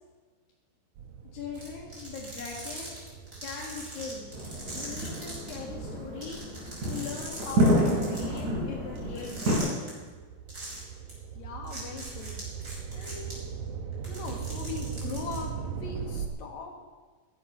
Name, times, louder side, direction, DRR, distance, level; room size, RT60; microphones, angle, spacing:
sound 1, 1.0-7.7 8.3-16.3, right 7 dB, 70° right, 2.5 m, -40 dB
voice 1, 1.3-3.1 3.4-4.3 4.7-6.4 6.9-9.7, left 5 dB, 90° left, -3 dB, 3.6 m, -40 dB
sound 2, 1.5-5.5 5.9-6.0 6.2-8.4 9.2-9.9 10.5-10.8 11.1-11.2 11.7-13.3 13.9-15.4, right 2 dB, 30° right, 6.2 m, -41 dB
sound 3, 4.3-9.6, equal, 55° right, 5.9 m, -29 dB
voice 2, 11.4-12.4 12.9-13.4 14.1-16.8, left 5 dB, 60° left, 2 dB, 2.9 m, -40 dB
15.0 x 12.5 x 5.8 m, 1.4 s
omnidirectional pair, 4.0 m